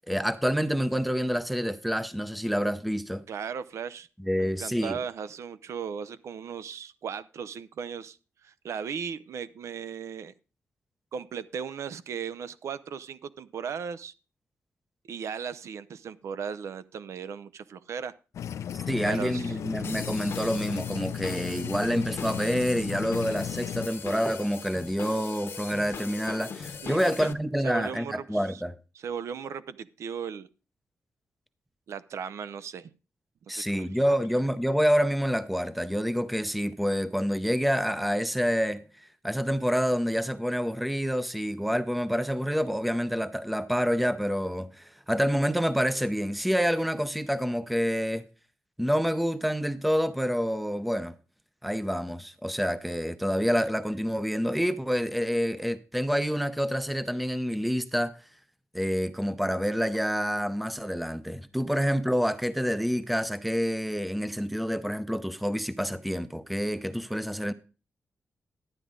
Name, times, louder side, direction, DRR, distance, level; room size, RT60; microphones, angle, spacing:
voice 1, 0.1-3.2 4.2-5.0 18.7-28.7 33.5-38.8 39.2-48.2 48.8-51.1 51.6-58.1 58.7-67.5, equal, ahead, 0.6 m, -27 dB
voice 2, 3.3-4.1 4.4-8.2 8.4-10.3 11.1-14.1 15.1-18.2 19.0-19.5 26.8-27.3 27.6-28.6 28.9-30.5 31.9-32.9 33.5-33.9, right 7 dB, 70° right, 0.6 m, -37 dB
sound 1, 18.3-23.9, left 9 dB, 85° left, 0.5 m, -35 dB
sound 2, 19.8-27.3, left 6 dB, 55° left, 1.2 m, -40 dB
12.0 x 9.5 x 3.7 m
wide cardioid pair, 170°, 5 cm